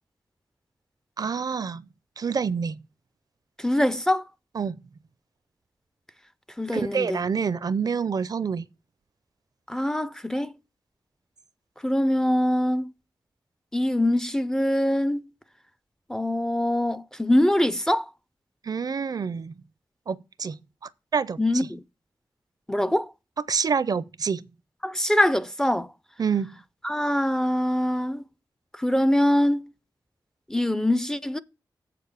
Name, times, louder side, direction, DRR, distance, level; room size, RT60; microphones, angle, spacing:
voice 1, 1.2-1.8 2.2-2.8 4.5-4.8 6.7-8.7 18.6-19.5 20.1-20.6 21.1-21.7 23.5-24.4 26.2-26.5, right 6 dB, 50° right, 0.5 m, -27 dB
voice 2, 3.6-4.2 6.6-7.2 9.7-10.5 11.8-12.9 13.7-15.2 16.1-18.1 21.4-21.8 22.7-23.1 24.8-25.9 26.8-28.2 28.8-29.7 30.5-31.4, left 1 dB, 5° left, 0.4 m, -23 dB
7.6 x 6.8 x 6.6 m
wide cardioid pair, 155°, 8 cm